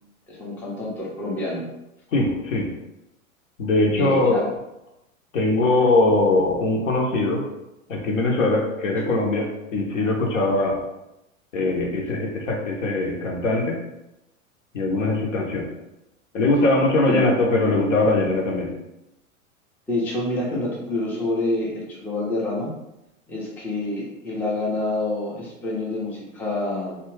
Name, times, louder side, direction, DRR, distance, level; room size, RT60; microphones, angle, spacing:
voice 1, 0.3-1.7 4.0-4.5 17.1-17.2 19.9-22.7 23.3-27.0, left 2 dB, 5° left, -4 dB, 0.4 m, -27 dB
voice 2, 2.1-2.7 3.6-4.3 5.3-7.4 7.9-10.8 11.5-13.8 14.7-15.7 16.3-18.7, left 2 dB, 70° left, 0 dB, 0.8 m, -21 dB
2.7 x 2.3 x 3.0 m, 0.90 s
figure-of-eight pair, 90°, 41 cm